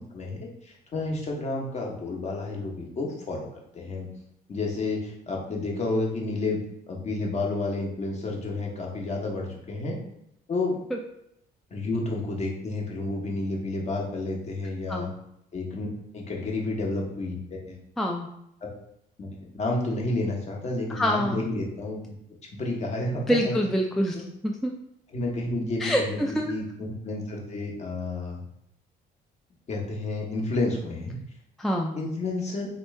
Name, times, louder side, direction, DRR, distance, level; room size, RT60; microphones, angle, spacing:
voice 1, 0.0-3.5 3.7-4.1 4.5-6.6 6.9-10.0 10.5-10.8 11.7-15.1 15.5-17.8 18.6-18.7 19.2-19.3 19.5-22.1 22.5-23.5 24.1-24.2 25.1-26.2 26.5-28.4 29.7-31.2 31.9-32.7, left 2 dB, 40° left, -1 dB, 1.1 m, -30 dB
voice 2, 18.0-18.3 20.9-21.4 23.3-24.2 24.4-24.7 25.8-26.5 31.6-31.9, equal, ahead, 1 dB, 0.3 m, -25 dB
3.5 x 3.0 x 3.2 m, 0.78 s
cardioid pair, 110°, 17 cm